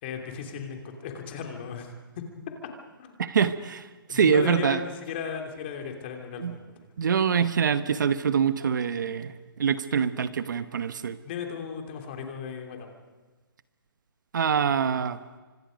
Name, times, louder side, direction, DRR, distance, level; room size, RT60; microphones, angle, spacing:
voice 1, 0.0-1.9 3.0-3.2 4.1-6.6 11.2-13.0, left 7 dB, 25° left, 3 dB, 3.0 m, -36 dB
voice 2, 3.2-4.8 6.4-6.6 7.0-9.3 9.6-11.2 14.3-15.2, right 7 dB, 50° right, 11 dB, 1.1 m, -24 dB
30.0 x 25.5 x 5.3 m, 1.3 s
hypercardioid pair, 165°, 13 cm